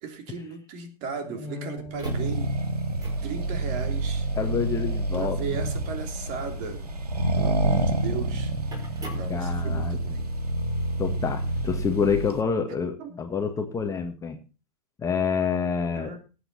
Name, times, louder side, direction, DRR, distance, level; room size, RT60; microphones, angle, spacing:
voice 1, 0.0-2.5 3.2-4.3 5.1-6.8 7.3-8.5 9.1-10.3 13.0-13.2 15.9-16.2, right 5 dB, 40° right, 6 dB, 3.2 m, -36 dB
voice 2, 1.3-2.0 4.3-5.4 9.3-10.0 11.0-14.4 15.0-16.2, left 6 dB, 15° left, 5 dB, 1.7 m, -28 dB
sound 1, 1.8-10.0, right 2 dB, 20° right, 4.7 m, -46 dB
Accelerating revving vroom, 2.0-12.4, right 2 dB, 90° right, 1.9 m, -28 dB
18.5 x 8.1 x 4.1 m, 0.33 s
hypercardioid pair, 110°, 19 cm